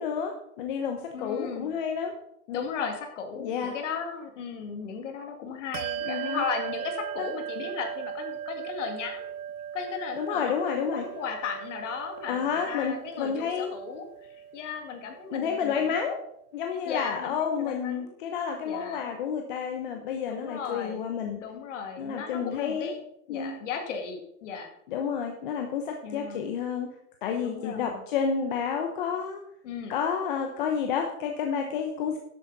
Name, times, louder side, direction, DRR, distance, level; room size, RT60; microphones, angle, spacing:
voice 1, 0.0-2.1 3.4-3.7 6.0-6.4 7.2-7.3 10.2-11.0 12.3-13.7 15.3-16.2 16.5-21.4 22.0-23.0 23.3-23.6 24.9-26.9 27.2-29.4 29.9-32.2, left 7 dB, 35° left, 4 dB, 0.9 m, -30 dB
voice 2, 1.1-1.7 2.5-9.3 9.7-14.1 14.3-16.0 16.9-18.1 18.6-19.0 20.3-21.0 21.4-24.7 26.0-26.4 27.4-28.0 29.6-29.9, left 6 dB, 50° left, 4 dB, 2.3 m, -36 dB
Bell, 5.7-15.7, right 10 dB, 70° right, 0.7 m, -38 dB
12.0 x 8.4 x 4.1 m, 0.76 s
hypercardioid pair, 160°, 46 cm